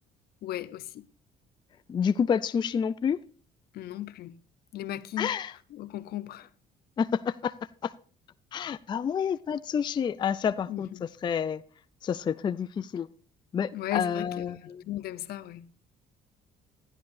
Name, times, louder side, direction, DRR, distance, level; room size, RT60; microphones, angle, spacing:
voice 1, 0.4-1.0 3.7-4.4 4.7-5.3 5.7-6.5 10.7-11.1 13.7-15.7, left 13 dB, 70° left, 0.6 m, -36 dB
voice 2, 1.9-3.2 5.2-5.5 7.0-7.5 7.8-7.9 8.5-11.6 12.0-13.1 13.5-14.8, left 7 dB, 25° left, 0.3 m, -29 dB
12.0 x 10.5 x 2.6 m
cardioid pair, 110°, 17 cm